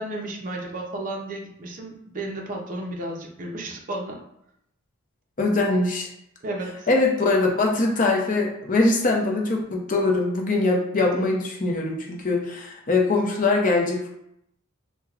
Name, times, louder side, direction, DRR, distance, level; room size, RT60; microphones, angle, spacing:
voice 1, 0.0-4.2 6.4-6.9, right 1 dB, 40° right, 0 dB, 0.5 m, -33 dB
voice 2, 5.4-6.1 6.9-14.1, left 3 dB, 40° left, 0 dB, 0.6 m, -22 dB
4.4 x 2.1 x 2.4 m, 0.76 s
head